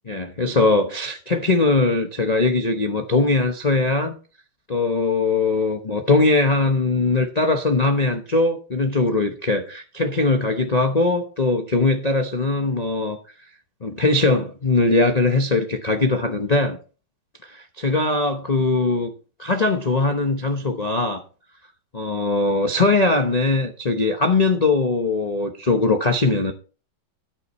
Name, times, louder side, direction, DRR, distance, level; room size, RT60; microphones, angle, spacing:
voice 1, 0.1-4.2 4.7-13.2 13.8-16.8 17.4-19.1 19.4-21.2 21.9-26.5, left 3 dB, 75° left, 0.3 m, -20 dB
12.5 x 9.9 x 3.1 m
omnidirectional pair, 2.4 m